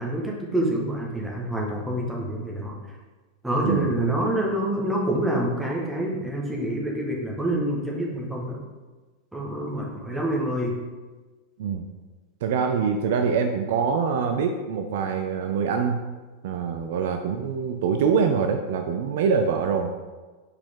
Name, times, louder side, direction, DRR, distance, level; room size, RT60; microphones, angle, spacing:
voice 1, 0.0-2.7 3.4-8.6 9.3-10.8, right 1 dB, 5° right, -3 dB, 1.5 m, -27 dB
voice 2, 12.4-16.0 16.4-19.9, right 6 dB, 55° right, 5 dB, 0.4 m, -24 dB
6.6 x 4.8 x 3.7 m, 1.3 s
figure-of-eight pair, 90°, 0 cm